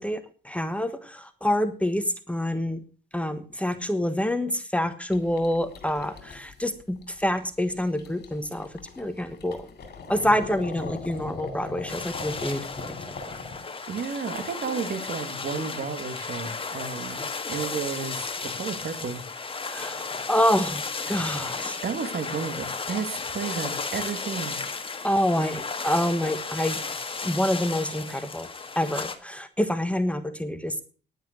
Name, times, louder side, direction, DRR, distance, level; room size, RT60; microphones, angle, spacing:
voice 1, 0.0-2.8 3.1-9.6 10.1-12.6 12.9-13.0 19.7-20.0 20.3-21.8 25.0-26.8 27.2-28.5 28.7-30.8, left 1 dB, 5° left, 9 dB, 1.4 m, -27 dB
sound 1, 5.1-13.6, left 4 dB, 55° left, 3.2 m, -40 dB
sound 2, 11.9-29.1, left 4 dB, 25° left, 1.7 m, -34 dB
voice 2, 13.9-19.2 21.8-24.6, right 6 dB, 55° right, 9 dB, 1.9 m, -32 dB
10.5 x 9.2 x 6.4 m, 0.40 s
cardioid pair, 90°, 20 cm